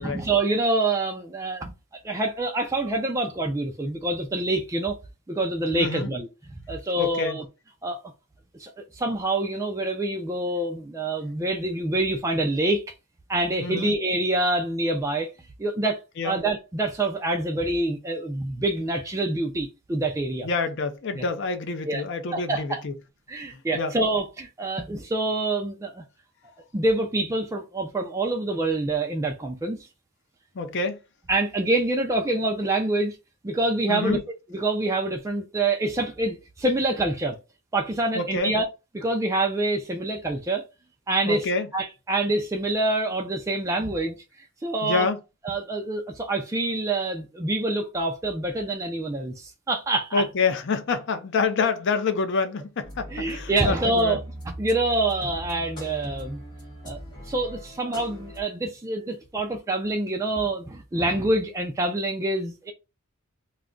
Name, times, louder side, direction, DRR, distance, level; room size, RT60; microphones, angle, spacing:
voice 1, 0.0-1.7 2.0-5.0 5.3-6.3 6.7-7.4 7.8-8.0 8.6-12.8 13.3-15.3 15.6-20.5 21.2-21.3 21.9-22.0 22.3-22.8 23.3-26.1 26.7-29.9 31.3-33.2 33.4-34.2 34.5-37.4 37.7-38.7 38.9-40.6 41.1-41.5 41.7-45.1 45.4-50.2 53.1-56.4 56.8-57.0 57.3-62.7, right 2 dB, 15° right, 0.3 m, -26 dB
voice 2, 5.8-6.1 7.0-7.4 13.6-13.9 16.2-16.4 20.4-22.9 23.5-23.9 30.5-31.0 33.9-34.2 38.1-38.5 41.3-41.7 44.8-45.2 50.1-54.2, left 4 dB, 55° left, 0.5 m, -27 dB
sound 1, 52.8-58.4, equal, 20° left, 0.9 m, -39 dB
2.3 x 2.1 x 3.6 m
head